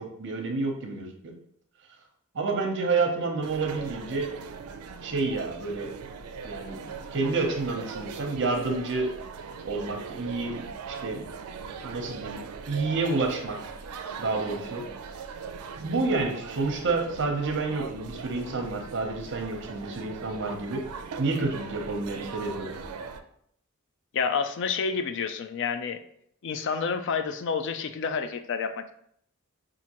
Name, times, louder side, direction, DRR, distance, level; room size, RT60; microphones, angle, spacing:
voice 1, 0.0-1.3 2.3-4.3 5.0-5.9 6.4-9.1 9.6-11.3 11.8-12.4 12.7-13.6 14.2-14.8 15.7-20.8 21.2-22.7, right 3 dB, 55° right, 3 dB, 0.7 m, -29 dB
sound 1, 3.4-23.2, right 5 dB, 90° right, 0.4 m, -40 dB
voice 2, 24.1-26.0 26.4-28.9, left 5 dB, 55° left, 9 dB, 0.4 m, -29 dB
5.6 x 2.5 x 2.9 m, 0.69 s
head